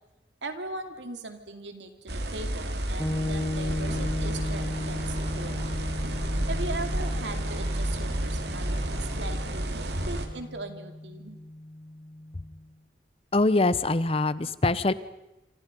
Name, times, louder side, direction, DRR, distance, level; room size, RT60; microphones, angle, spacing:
voice 1, 0.4-5.5 6.5-11.4, right 2 dB, 85° right, 7 dB, 2.7 m, -39 dB
sound 1, 2.1-10.3, right 1 dB, 65° right, 2.5 m, -31 dB
sound 2, 3.0-12.7, left 1 dB, 15° left, 1.7 m, -36 dB
sound 3, 3.8-9.3, right 1 dB, 35° right, 2.2 m, -43 dB
voice 2, 13.3-14.9, left 2 dB, 30° left, 16 dB, 0.8 m, -23 dB
27.0 x 26.5 x 5.4 m, 0.96 s
head